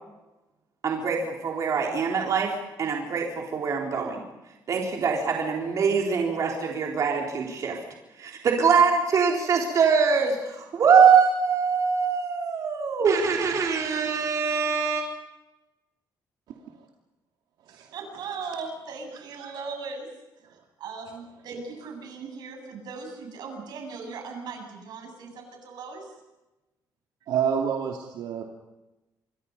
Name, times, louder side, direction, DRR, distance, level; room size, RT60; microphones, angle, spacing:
voice 1, 0.8-4.2 4.7-7.8 8.2-15.0, right 6 dB, 50° right, 0 dB, 4.0 m, -23 dB
voice 2, 16.5-16.9 17.6-17.9 19.1-19.5 20.4-20.6 27.3-28.4, right 8 dB, 90° right, 2 dB, 2.6 m, -30 dB
voice 3, 17.9-20.1 20.8-26.1, right 4 dB, 70° right, 3 dB, 7.8 m, -38 dB
27.5 x 23.0 x 5.5 m, 1.0 s
cardioid pair, 155°, 7 cm